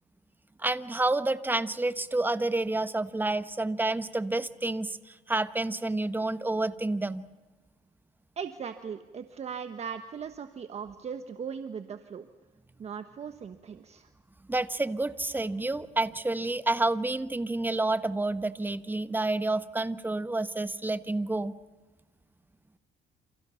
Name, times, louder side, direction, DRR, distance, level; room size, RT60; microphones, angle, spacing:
voice 1, 0.6-7.3 14.5-21.5, right 2 dB, 10° right, 12 dB, 1.2 m, -29 dB
voice 2, 8.4-12.3 12.8-14.1, right 7 dB, 40° right, 8 dB, 1.3 m, -38 dB
28.5 x 28.5 x 5.8 m, 1.2 s
cardioid pair, 110°, 17 cm